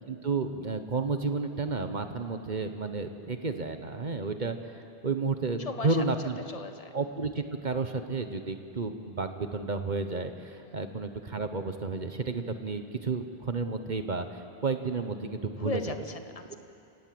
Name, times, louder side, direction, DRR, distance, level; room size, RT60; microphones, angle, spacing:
voice 1, 0.0-6.4 6.9-15.9 16.5-16.6, right 4 dB, 45° right, 8 dB, 1.2 m, -32 dB
voice 2, 5.6-6.0 6.5-6.9 10.6-10.9 15.6-16.5, left 3 dB, 35° left, 7 dB, 1.4 m, -37 dB
29.5 x 18.0 x 7.8 m, 2.7 s
omnidirectional pair, 1.1 m